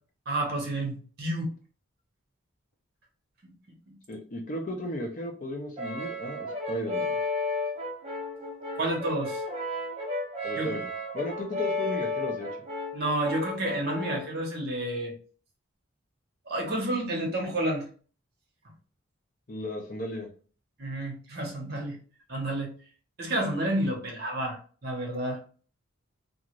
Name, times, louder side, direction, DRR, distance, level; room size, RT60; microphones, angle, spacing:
voice 1, 0.3-1.5 3.4-3.5 8.8-9.4 10.5-10.7 12.9-15.1 16.5-17.8 20.8-22.0 22.3-22.7 23.2-25.4, right 1 dB, 50° right, 1 dB, 1.0 m, -30 dB
voice 2, 4.1-7.1 10.4-10.9 11.1-12.5 19.5-20.3, left 1 dB, 40° left, 2 dB, 0.6 m, -35 dB
Brass instrument, 5.8-14.3, left 2 dB, 30° right, 0.6 m, -33 dB
2.5 x 2.4 x 3.0 m, 0.40 s
head